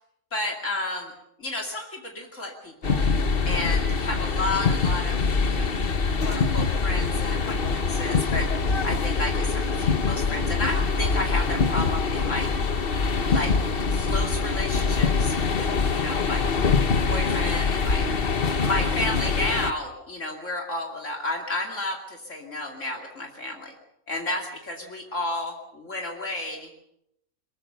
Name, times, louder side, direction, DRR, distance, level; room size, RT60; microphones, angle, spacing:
voice 1, 0.3-1.1 1.4-3.1 3.4-5.7 6.2-8.5 8.8-12.5 13.3-13.6 13.9-16.5 17.1-18.1 18.6-23.7 24.1-26.7, left 2 dB, 60° left, 1 dB, 3.0 m, -32 dB
sound 1, 2.8-19.7, left 4 dB, 45° left, 1.3 m, -24 dB
23.0 x 21.5 x 6.8 m, 0.75 s
omnidirectional pair, 1.5 m